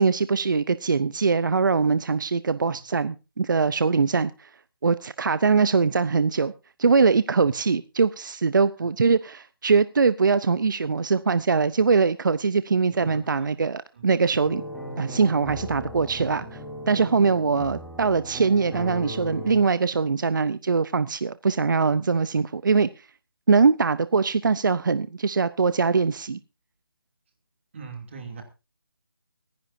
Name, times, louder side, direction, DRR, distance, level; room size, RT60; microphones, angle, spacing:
voice 1, 0.0-4.3 4.8-6.5 6.8-14.6 15.0-16.6 16.9-22.9 23.5-26.4, right 5 dB, 55° right, 0.6 m, -22 dB
voice 2, 12.9-13.5 13.9-14.1 27.7-28.4, right 5 dB, 30° right, 2.7 m, -41 dB
sound 1, 14.4-19.6, equal, ahead, 1.5 m, -37 dB
24.5 x 10.5 x 2.7 m
figure-of-eight pair, 170°, 12 cm